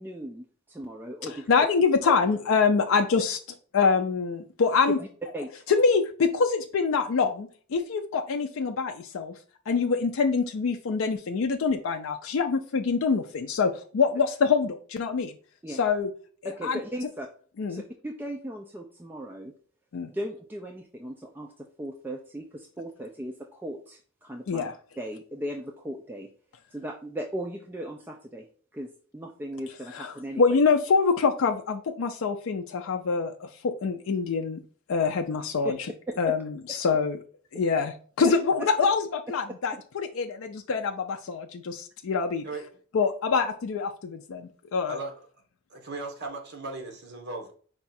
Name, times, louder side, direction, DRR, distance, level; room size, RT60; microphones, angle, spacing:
voice 1, 0.0-1.5 2.0-2.2 5.3-5.6 15.6-15.8 16.4-17.3 17.7-19.5 20.0-24.7 25.0-26.3 26.7-28.5 28.7-30.6 35.6-35.8 36.2-36.3 38.2-38.7, right 1 dB, 10° right, 1 dB, 0.3 m, -37 dB
voice 2, 1.3-3.4 3.7-5.0 5.7-9.3 9.7-15.3 15.7-16.1 16.6-16.8 17.6-17.8 19.9-20.1 24.5-24.7 29.9-34.6 34.9-35.8 36.2-37.2 37.5-42.4 42.9-45.0, left 5 dB, 65° left, 4 dB, 0.4 m, -25 dB
voice 3, 44.9-45.2 45.7-47.5, right 3 dB, 50° right, 3 dB, 1.1 m, -37 dB
4.7 x 2.3 x 4.1 m, 0.43 s
head